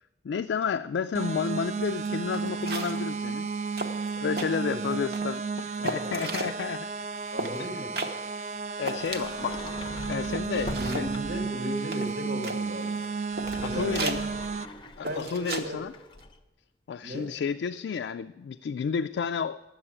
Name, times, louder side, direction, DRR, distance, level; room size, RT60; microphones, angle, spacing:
voice 1, 0.2-3.5 4.2-6.9 7.6-7.9 8.8-11.1 13.6-14.2 15.0-15.9 16.9-19.6, left 6 dB, 80° left, 8 dB, 0.3 m, -31 dB
sound 1, 1.1-14.7, right 5 dB, 40° right, 0.4 m, -33 dB
sound 2, 2.0-2.1 2.3-3.1 3.5-3.6 3.8-4.5 4.9-5.4 5.8-6.5 7.4-7.6 8.0-8.1 8.5-8.6 8.8-9.5 10.0-10.1 10.3-11.1 11.9-12.6 13.0-13.1 13.4-13.6 13.9-14.2 15.1-15.7 16.0-16.2, right 2 dB, 60° right, 1.0 m, -35 dB
voice 2, 4.7-5.0 5.8-6.4 7.3-7.9 10.5-13.0 13.6-14.2 15.0-15.8 17.0-17.3, equal, 80° right, 1 dB, 1.8 m, -36 dB
Sliding door, 9.1-11.6 13.2-16.4, left 2 dB, 25° left, 0.6 m, -42 dB
11.0 x 7.1 x 8.7 m, 1.1 s
head